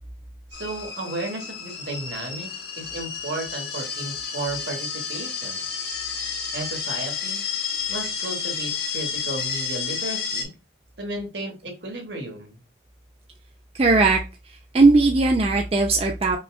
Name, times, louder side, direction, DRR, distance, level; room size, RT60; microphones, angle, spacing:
sound 1, 0.5-10.4, left 6 dB, 60° left, 0.9 m, -31 dB
voice 1, 0.5-2.5 2.8-5.6 6.5-7.5 7.9-10.5 11.0-12.6, right 2 dB, 70° right, 1 dB, 1.4 m, -33 dB
voice 2, 13.8-14.2 14.7-16.4, right 3 dB, 30° right, 2 dB, 0.4 m, -18 dB
5.2 x 2.3 x 2.3 m, 0.29 s
head